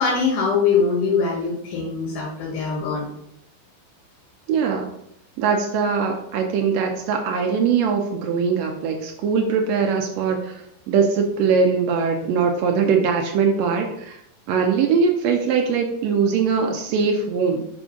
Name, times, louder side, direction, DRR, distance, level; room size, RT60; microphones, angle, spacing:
voice 1, 0.0-3.1, left 5 dB, 80° left, -4 dB, 3.3 m, -22 dB
voice 2, 4.5-4.9 5.4-10.6 10.9-14.2 14.5-17.7, right 5 dB, 85° right, 3 dB, 1.5 m, -21 dB
5.8 x 3.7 x 5.2 m, 0.73 s
omnidirectional pair, 3.9 m